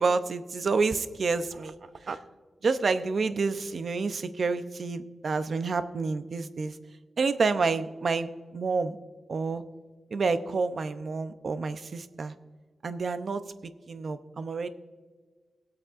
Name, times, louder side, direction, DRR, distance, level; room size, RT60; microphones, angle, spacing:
voice 1, 0.0-1.7 2.1-2.2 2.6-6.8 7.2-9.0 9.3-9.6 10.1-12.3 12.8-13.4 13.9-14.7, right 4 dB, 55° right, 11 dB, 0.6 m, -28 dB
20.0 x 8.5 x 2.5 m, 1.4 s
wide cardioid pair, 125°, 0 cm